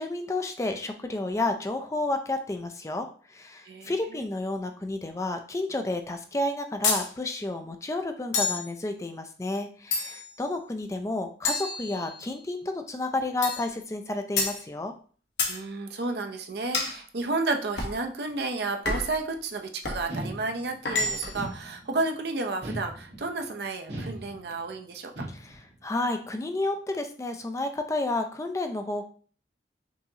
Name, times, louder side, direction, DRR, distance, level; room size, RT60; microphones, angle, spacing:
voice 1, 0.0-14.9 25.3-29.1, left 2 dB, 15° left, 6 dB, 0.3 m, -31 dB
voice 2, 3.6-4.2 15.5-25.3, right 3 dB, 65° right, 4 dB, 0.6 m, -32 dB
sound 1, 6.8-7.1 8.3-8.7 9.9-10.4 11.4-12.3 13.4-13.7 14.4-14.6 15.4-15.6 16.7-17.0 17.8-18.0 18.8-19.2 19.8-20.1 20.8-21.4, left 3 dB, 80° left, 1.0 m, -28 dB
sound 2, 20.1-20.9 21.3-22.1 22.6-23.4 23.9-24.7 25.2-25.8, right 1 dB, 85° right, 1.6 m, -38 dB
5.5 x 2.9 x 2.7 m, 0.42 s
head